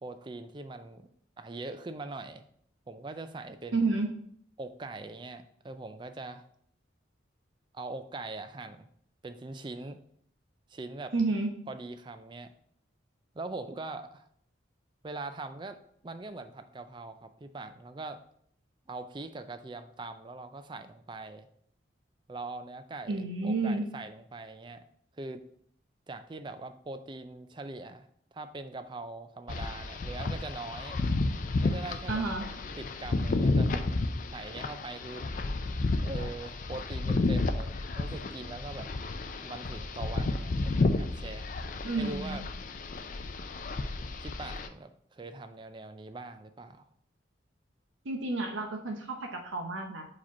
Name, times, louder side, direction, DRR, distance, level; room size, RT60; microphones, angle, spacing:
voice 1, 0.0-1.1 1.4-2.4 2.9-3.9 4.6-6.4 7.7-8.9 9.2-10.0 10.7-11.1 11.7-12.5 13.3-14.3 15.0-15.8 16.0-18.2 18.9-21.5 22.3-24.8 25.1-25.4 26.1-31.0 31.6-32.2 32.8-34.1 34.3-35.3 36.0-38.9 39.4-41.6 41.9-42.4 44.2-46.9, right 3 dB, 25° right, 9 dB, 0.4 m, -42 dB
voice 2, 3.7-4.1 11.1-11.5 23.1-23.8 32.1-32.5 41.8-42.4 48.0-50.1, right 3 dB, 80° right, 3 dB, 0.7 m, -30 dB
sound 1, 29.5-44.7, left 2 dB, 40° left, 0.4 m, -31 dB
4.9 x 4.3 x 4.4 m, 0.66 s
head